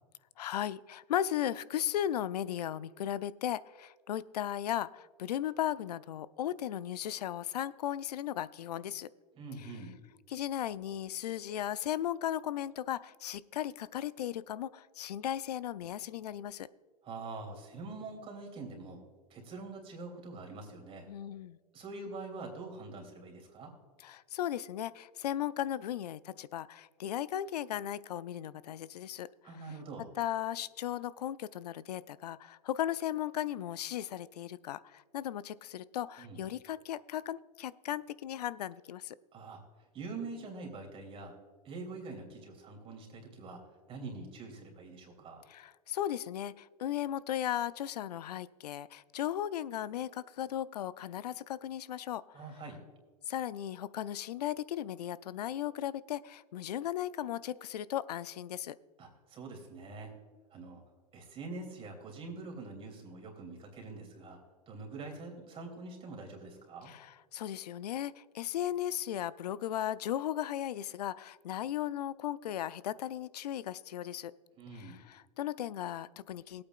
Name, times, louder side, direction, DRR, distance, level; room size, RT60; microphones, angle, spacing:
voice 1, 0.4-9.1 9.6-9.7 10.3-16.7 21.1-21.6 24.0-29.6 30.2-39.2 45.5-52.4 53.3-58.8 66.8-74.3 74.7-76.6, left 11 dB, 85° left, 17 dB, 0.5 m, -36 dB
voice 2, 9.4-10.0 17.0-19.0 19.3-21.1 21.7-23.7 29.4-30.1 36.2-36.4 39.3-39.6 39.9-41.4 41.6-43.6 43.9-45.4 52.3-52.8 59.0-60.1 60.5-60.8 61.1-64.4 64.7-66.9 74.6-75.0, right 3 dB, 30° right, 1 dB, 3.0 m, -44 dB
19.5 x 8.7 x 2.5 m, 1.5 s
hypercardioid pair, 120°, 20 cm